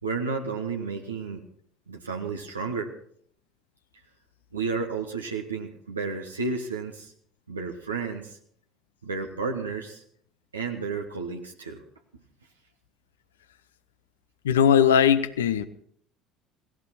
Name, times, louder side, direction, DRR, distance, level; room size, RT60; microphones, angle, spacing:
voice 1, 0.0-1.4 1.9-2.9 4.5-7.1 7.5-8.4 9.0-10.0 10.5-11.8, right 4 dB, 85° right, 2 dB, 1.4 m, -32 dB
voice 2, 14.4-15.7, left 8 dB, 75° left, 13 dB, 0.9 m, -19 dB
17.0 x 17.0 x 4.3 m, 0.64 s
figure-of-eight pair, 60°, 0 cm